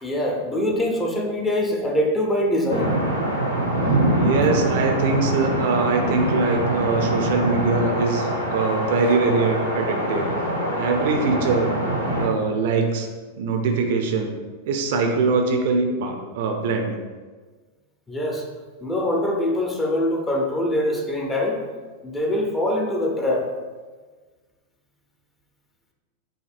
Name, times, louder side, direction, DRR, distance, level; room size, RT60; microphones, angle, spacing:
voice 1, 0.0-2.9 18.1-18.4 18.8-21.6 22.0-23.5, left 1 dB, 15° left, 0 dB, 0.7 m, -23 dB
sound 1, 2.7-12.3, right 1 dB, 85° left, 0.8 m, -24 dB
voice 2, 4.2-10.3 10.7-11.7 12.1-13.1 13.4-14.3 14.7-17.0, right 4 dB, 55° right, 4 dB, 0.5 m, -22 dB
7.7 x 2.7 x 2.5 m, 1.4 s
figure-of-eight pair, 90°, 0 cm